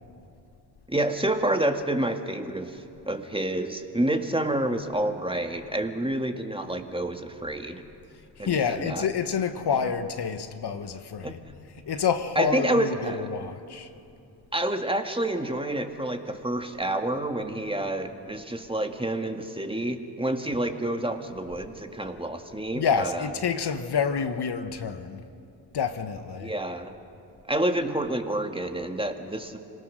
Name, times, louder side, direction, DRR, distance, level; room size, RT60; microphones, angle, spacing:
voice 1, 0.9-7.8 8.4-9.1 11.2-11.3 12.4-13.3 14.5-23.3 26.4-26.9 27.5-29.6, right 1 dB, 10° right, 2.1 m, -28 dB
voice 2, 8.4-11.4 11.9-13.9 22.7-25.2 25.7-26.5, left 6 dB, 55° left, 1.3 m, -28 dB
26.0 x 19.0 x 6.4 m
hypercardioid pair, 40°, 48 cm